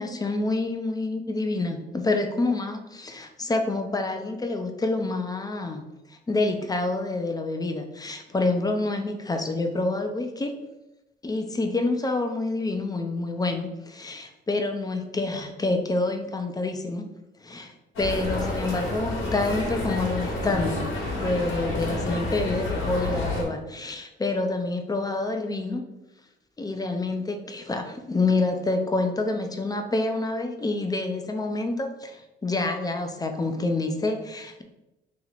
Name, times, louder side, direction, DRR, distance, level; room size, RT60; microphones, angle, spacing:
voice 1, 0.0-5.8 6.3-10.5 11.2-17.1 17.4-25.8 26.6-34.6, left 2 dB, 20° left, 6 dB, 0.5 m, -27 dB
sound 1, 18.0-23.4, left 2 dB, 75° left, 1.2 m, -29 dB
2.9 x 2.9 x 4.0 m, 0.96 s
cardioid pair, 90°, 20 cm